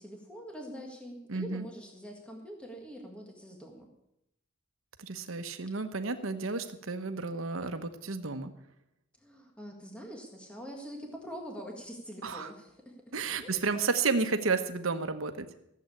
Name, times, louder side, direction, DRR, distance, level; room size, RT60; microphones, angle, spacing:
voice 1, 0.0-3.9 9.2-13.0 13.4-13.9, equal, 5° left, 1 dB, 1.8 m, -44 dB
voice 2, 1.3-1.6 5.0-8.5 12.2-12.5 13.1-15.5, right 4 dB, 75° right, 8 dB, 1.1 m, -32 dB
15.0 x 7.8 x 8.4 m, 0.84 s
head